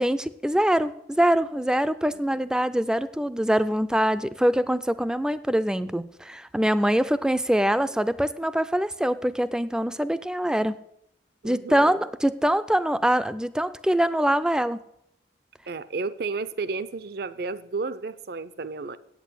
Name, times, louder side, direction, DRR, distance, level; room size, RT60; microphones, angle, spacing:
voice 1, 0.0-10.8 11.4-14.8, equal, 5° right, 14 dB, 0.3 m, -24 dB
voice 2, 2.1-2.4 11.4-12.0 15.7-19.0, right 4 dB, 60° right, 16 dB, 0.6 m, -32 dB
8.4 x 8.2 x 8.2 m, 0.78 s
head